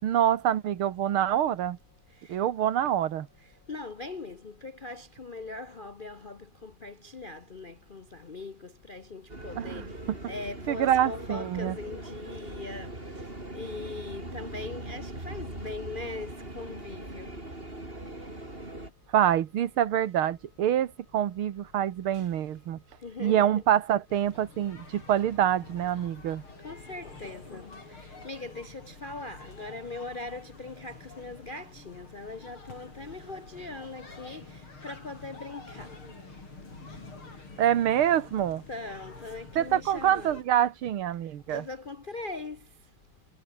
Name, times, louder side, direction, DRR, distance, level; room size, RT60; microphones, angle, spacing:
voice 1, 0.0-1.8 2.3-3.3 9.6-10.3 10.7-11.8 19.1-22.8 23.2-26.4 37.6-38.6 39.6-41.7, right 10 dB, 85° right, 2.1 m, -26 dB
voice 2, 3.7-10.0 10.3-17.4 22.1-22.3 23.0-23.5 26.6-36.0 38.7-40.4 41.5-42.7, left 3 dB, 45° left, 0.6 m, -41 dB
sound 1, 9.3-18.9, right 1 dB, 25° right, 6.0 m, -41 dB
sound 2, 24.1-40.4, left 3 dB, 85° left, 6.5 m, -48 dB
omnidirectional pair, 2.3 m